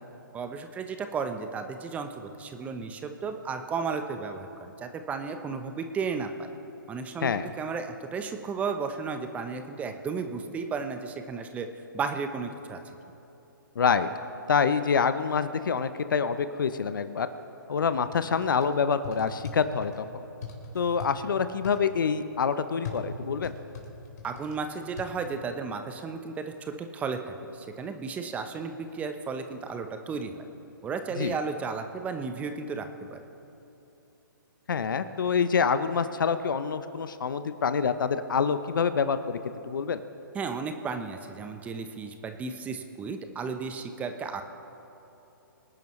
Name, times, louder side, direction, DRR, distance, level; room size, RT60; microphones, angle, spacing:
voice 1, 0.3-6.5 6.9-11.7 11.9-12.8 24.2-30.4 30.8-33.2 40.3-44.4, right 5 dB, 10° right, 7 dB, 0.8 m, -34 dB
voice 2, 13.8-14.1 14.5-17.3 17.7-20.2 20.7-23.5 31.2-31.4 34.7-39.4 39.7-40.0, left 6 dB, 65° left, 11 dB, 0.8 m, -26 dB
sound 1, 18.1-18.7 19.0-20.0 20.4-21.1 21.6-21.8 22.8-24.6 25.0-25.1, left 6 dB, 50° left, 3.0 m, -40 dB
25.0 x 10.5 x 3.2 m, 3.0 s
hypercardioid pair, 140°, 12 cm